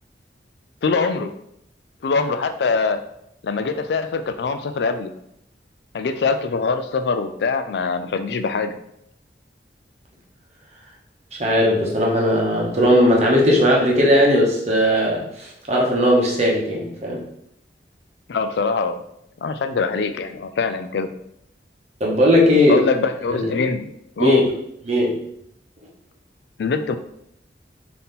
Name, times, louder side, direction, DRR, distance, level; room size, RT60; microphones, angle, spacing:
voice 1, 0.8-1.3 2.0-3.0 3.4-5.1 5.9-8.8 18.3-19.0 19.4-21.1 22.7-23.9 24.2-24.4 26.6-27.0, left 4 dB, 70° left, 9 dB, 0.4 m, -23 dB
voice 2, 11.4-17.2 22.0-22.8 23.3-23.5 24.2-24.4 24.9-25.2, equal, 40° right, -2 dB, 1.0 m, -17 dB
4.0 x 2.8 x 3.6 m, 0.75 s
head